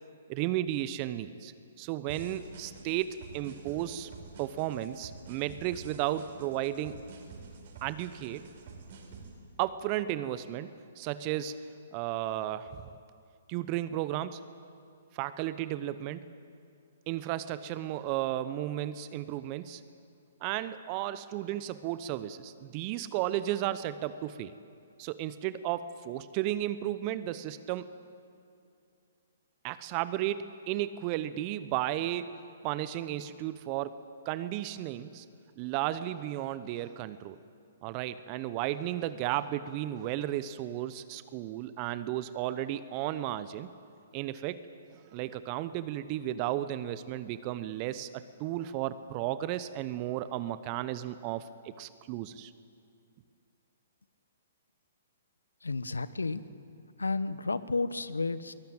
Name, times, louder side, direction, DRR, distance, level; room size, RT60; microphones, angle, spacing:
voice 1, 0.3-1.5 1.8-4.1 4.4-7.0 7.8-8.5 9.6-11.6 11.9-12.8 13.5-14.4 15.1-16.2 17.1-19.8 20.4-24.5 25.0-27.9 29.6-32.3 32.6-34.0 34.3-35.2 35.6-37.4 37.8-43.7 44.1-44.6 44.9-52.5, right 13 dB, 35° right, 14 dB, 0.8 m, -34 dB
sound 1, 2.1-9.3, right 4 dB, 55° right, 5.3 m, -48 dB
voice 2, 55.6-56.4 57.0-58.5, left 3 dB, 85° left, 15 dB, 1.0 m, -32 dB
23.0 x 18.5 x 8.9 m, 2.4 s
figure-of-eight pair, 125°, 0 cm